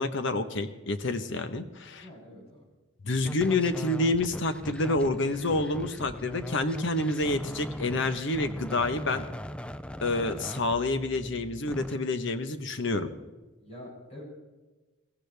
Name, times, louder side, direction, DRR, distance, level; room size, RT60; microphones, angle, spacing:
voice 1, 0.0-2.1 3.0-9.2 10.0-13.1, left 2 dB, 65° left, 9 dB, 1.1 m, -28 dB
voice 2, 2.0-2.7 13.6-14.2, left 1 dB, 35° left, -6 dB, 7.3 m, -46 dB
sound 1, 3.2-12.0, left 1 dB, 5° left, 0.4 m, -40 dB
22.0 x 16.5 x 3.4 m, 1.2 s
head